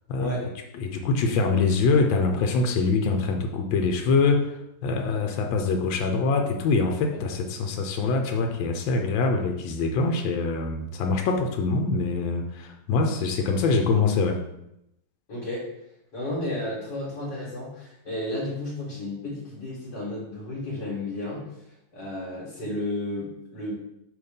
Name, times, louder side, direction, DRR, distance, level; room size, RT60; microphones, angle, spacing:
voice 1, 0.8-14.4, left 4 dB, 90° left, 4 dB, 1.4 m, -24 dB
voice 2, 15.3-15.7 16.1-21.4 21.9-23.7, left 1 dB, 60° left, -6 dB, 2.1 m, -32 dB
6.1 x 3.0 x 5.1 m, 0.82 s
omnidirectional pair, 2.0 m